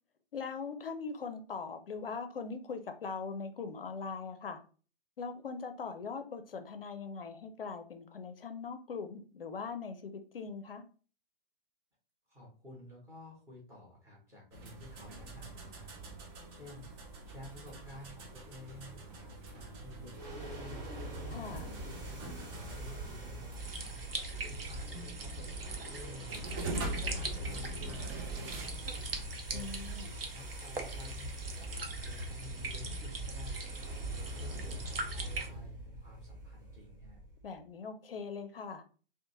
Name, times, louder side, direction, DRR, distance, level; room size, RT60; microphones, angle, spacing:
voice 1, 0.3-4.6 5.2-10.8 21.3-21.7 29.5-30.1 37.4-38.8, left 5 dB, 75° left, 8 dB, 0.5 m, -41 dB
voice 2, 12.3-15.9 16.2-16.9 17.2-21.1 21.5-34.0 34.4-37.2, left 1 dB, 10° right, -5 dB, 1.0 m, -52 dB
sound 1, 14.5-28.7, right 2 dB, 25° right, 0.5 m, -44 dB
sound 2, 20.1-37.5, right 1 dB, 50° right, 1.3 m, -43 dB
sound 3, 23.6-35.5, right 3 dB, 75° right, 0.7 m, -43 dB
2.8 x 2.1 x 2.7 m, 0.39 s
figure-of-eight pair, 110°, 29 cm